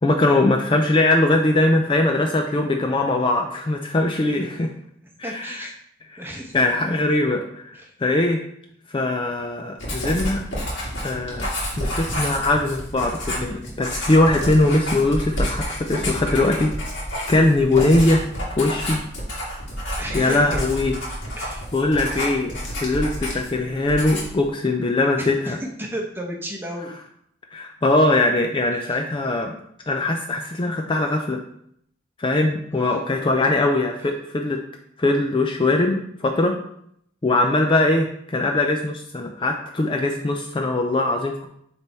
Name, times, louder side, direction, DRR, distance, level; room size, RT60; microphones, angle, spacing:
voice 1, 0.0-4.7 5.2-5.7 6.1-6.2 6.5-7.6 8.0-8.4 8.9-10.4 11.0-11.5 11.8-16.7 17.3-18.3 18.6-19.0 20.1-20.9 21.7-25.6 27.5-29.5 29.9-31.4 32.2-34.6 35.0-36.5 37.2-41.5, left 2 dB, 25° left, 3 dB, 0.4 m, -21 dB
voice 2, 5.2-5.7 6.2-6.6 7.7-7.9 20.0-20.6 21.4-21.6 25.2-26.9 28.7-29.0 32.7-33.0, right 1 dB, 10° right, 1 dB, 0.9 m, -33 dB
Writing, 9.8-23.6 23.9-24.4, equal, 65° left, 2.3 m, -29 dB
6.9 x 3.4 x 4.4 m, 0.70 s
head